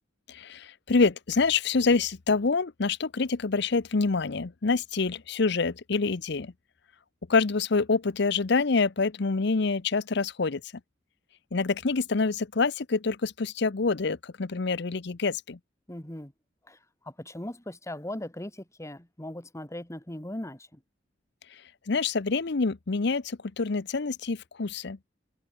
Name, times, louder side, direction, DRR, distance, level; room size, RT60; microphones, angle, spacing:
voice 1, 0.3-6.5 7.3-10.6 11.5-15.6 21.9-25.0, left 4 dB, 65° left, 0.8 m, -26 dB
voice 2, 15.9-16.3 16.7-16.8 17.1-20.8, left 1 dB, 15° left, 1.9 m, -39 dB
head